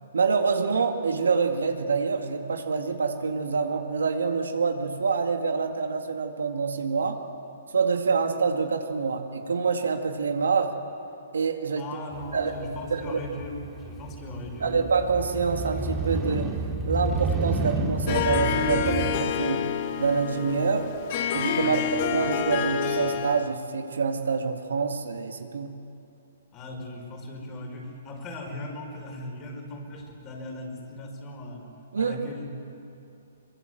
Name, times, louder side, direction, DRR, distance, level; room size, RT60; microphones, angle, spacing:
voice 1, 0.1-7.2 7.7-10.7 11.3-11.8 12.3-12.5 12.9-13.2 14.6-16.6 16.9-19.7 20.0-20.9 21.3-21.8 22.1-25.8 31.9-32.2, right 5 dB, 80° right, 5 dB, 2.1 m, -26 dB
voice 2, 11.8-14.8 21.6-21.8 26.5-31.7 32.0-32.5, left 1 dB, 25° left, 1 dB, 5.1 m, -38 dB
Motorcycle, 12.1-19.2, right 3 dB, 10° right, 2.5 m, -31 dB
Harp, 18.1-23.5, left 8 dB, 45° left, 1.5 m, -28 dB
23.0 x 22.5 x 8.0 m, 2.7 s
hypercardioid pair, 135°, 0 cm